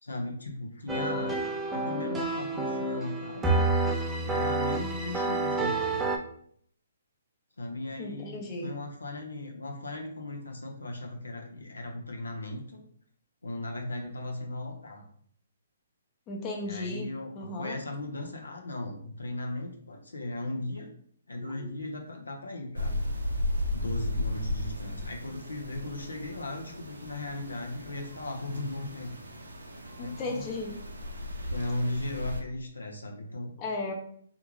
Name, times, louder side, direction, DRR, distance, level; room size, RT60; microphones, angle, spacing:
voice 1, 0.0-1.4 1.7-3.6 4.2-6.1 7.6-12.8 13.4-15.1 16.7-20.9 21.3-23.0 23.7-29.1 30.0-30.5 31.5-33.6, left 2 dB, 90° left, 2 dB, 0.5 m, -37 dB
sound 1, 0.9-6.2, right 2 dB, 10° right, 0.3 m, -29 dB
voice 2, 8.0-8.7 16.3-17.1 17.3-17.8 21.4-21.7 30.0-30.8 33.6-33.9, left 2 dB, 25° left, 0 dB, 0.6 m, -35 dB
sound 2, 22.7-32.4, left 1 dB, 80° right, 0.5 m, -35 dB
2.4 x 2.2 x 3.1 m, 0.62 s
hypercardioid pair, 135°, 0 cm